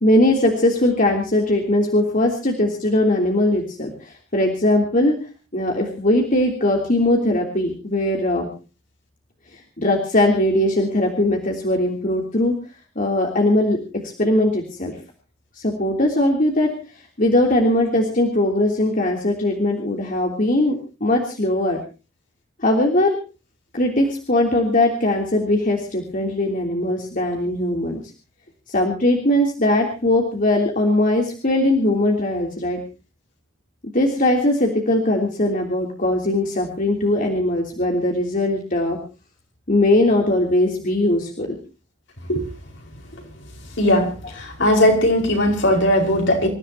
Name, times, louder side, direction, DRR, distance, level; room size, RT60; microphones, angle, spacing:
voice 1, 0.0-5.2 5.5-8.5 9.8-12.5 12.9-13.8 14.2-14.9 15.6-16.7 17.2-21.8 22.6-23.1 23.7-28.0 28.7-32.8 33.9-39.0 39.7-41.5, left 1 dB, 45° left, 0 dB, 3.2 m, -20 dB
voice 2, 43.8-44.1 44.4-46.5, left 1 dB, 65° left, 2 dB, 5.4 m, -18 dB
27.5 x 15.0 x 2.9 m, 0.33 s
head